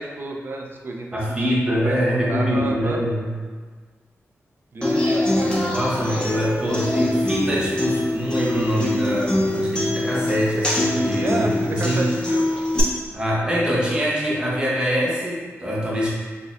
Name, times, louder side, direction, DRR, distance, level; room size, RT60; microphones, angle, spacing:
voice 1, 0.0-3.0 4.7-5.6 11.2-12.5, right 2 dB, 45° right, 1 dB, 0.4 m, -30 dB
voice 2, 1.1-3.3 5.7-12.0 13.1-16.1, equal, 20° right, -5 dB, 0.9 m, -24 dB
Human voice / Acoustic guitar, 4.8-12.8, left 1 dB, 20° left, 0.8 m, -23 dB
4.1 x 2.6 x 2.5 m, 1.5 s
wide cardioid pair, 100°, 5 cm